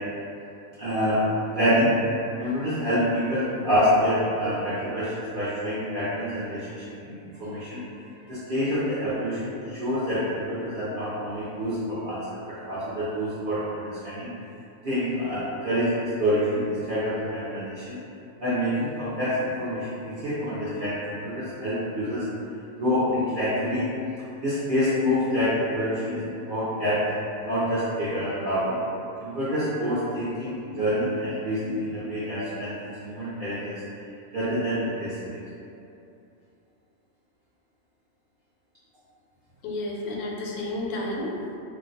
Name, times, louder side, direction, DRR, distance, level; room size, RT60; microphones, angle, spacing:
voice 1, 0.8-1.2 1.5-1.9 2.4-7.8 8.3-14.3 14.8-18.0 18.4-22.2 22.8-23.9 24.4-27.1 27.4-28.8 29.2-32.7 33.0-33.8 34.3-35.4, equal, 60° right, -12 dB, 0.5 m, -27 dB
voice 2, 39.6-41.6, left 1 dB, 90° left, -2 dB, 1.1 m, -31 dB
2.5 x 2.1 x 3.8 m, 2.7 s
omnidirectional pair, 1.5 m